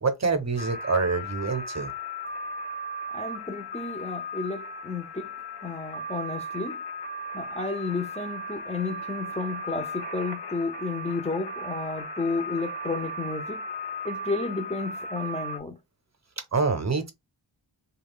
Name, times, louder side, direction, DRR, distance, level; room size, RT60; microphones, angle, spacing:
voice 1, 0.0-1.9 16.5-17.1, right 4 dB, 35° right, 0.7 m, -26 dB
sound 1, 0.6-15.6, equal, 55° left, 0.7 m, -36 dB
voice 2, 3.1-5.3 5.6-6.8 7.3-13.6 14.0-15.8, left 3 dB, 15° left, 0.4 m, -32 dB
3.1 x 2.3 x 3.5 m
wide cardioid pair, 95°, 50 cm